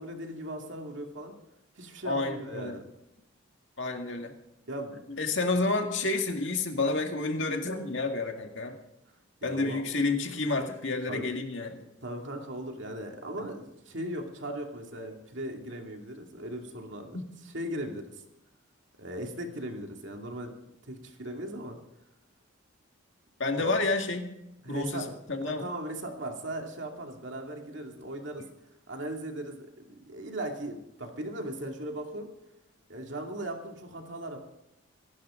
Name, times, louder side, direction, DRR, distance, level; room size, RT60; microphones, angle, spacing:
voice 1, 0.0-1.3 1.8-2.8 4.7-5.0 9.4-9.8 11.1-11.3 12.0-18.0 19.0-20.5 20.9-21.8 23.6-23.7 24.6-25.1 25.4-28.4 28.9-32.3 32.9-34.4, right 1 dB, 55° right, 2 dB, 2.6 m, -38 dB
voice 2, 2.0-2.8 3.8-4.3 5.2-8.8 9.4-11.8 13.4-13.5 17.1-17.2 23.4-24.3 24.7-25.6, left 3 dB, 60° left, 4 dB, 2.0 m, -30 dB
25.5 x 11.5 x 3.8 m, 0.89 s
head